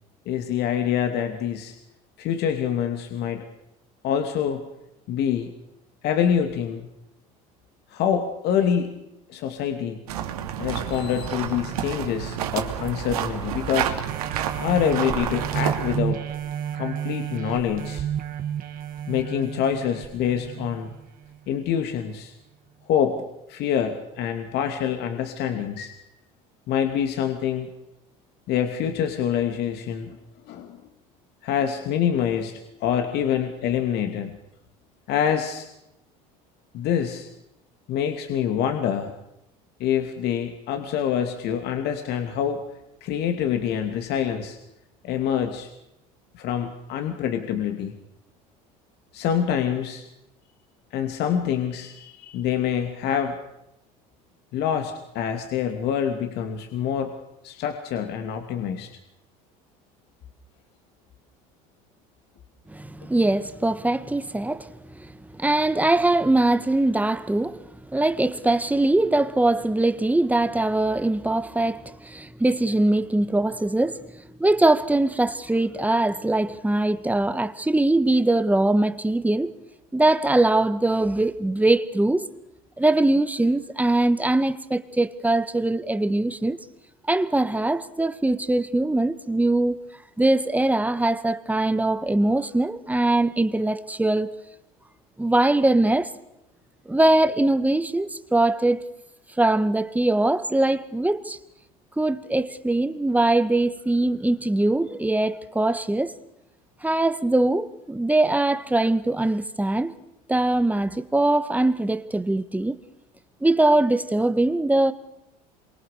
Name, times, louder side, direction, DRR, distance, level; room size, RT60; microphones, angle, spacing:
voice 1, 0.3-1.7 2.2-3.5 4.0-4.6 5.1-5.5 6.0-6.9 7.9-9.0 9.3-10.0 10.6-14.0 14.6-16.2 16.7-18.1 19.1-20.9 21.5-22.3 22.9-23.2 23.5-25.9 26.7-27.7 28.5-30.2 30.5-30.8 31.4-34.3 35.1-35.7 36.7-37.3 37.9-39.1 39.8-42.6 43.0-44.6 45.0-45.7 46.3-48.0 49.1-50.0 50.9-53.4 54.5-57.2 57.4-58.9, left 8 dB, 60° left, 2.7 m, -26 dB
sound 1, 10.1-16.0, right 9 dB, 90° right, 3.1 m, -29 dB
sound 2, 14.1-21.3 21.8-21.9, right 9 dB, 50° right, 2.8 m, -31 dB
voice 2, 62.7-67.6 67.9-74.1 74.4-79.5 79.9-82.3 82.8-86.6 87.1-89.8 90.2-94.3 95.2-96.1 96.9-98.8 99.4-101.4 102.0-106.1 106.8-109.9 110.3-112.8 113.4-114.9, right 2 dB, 10° right, 1.8 m, -22 dB
27.0 x 24.5 x 6.8 m
supercardioid pair, 85°, 19 cm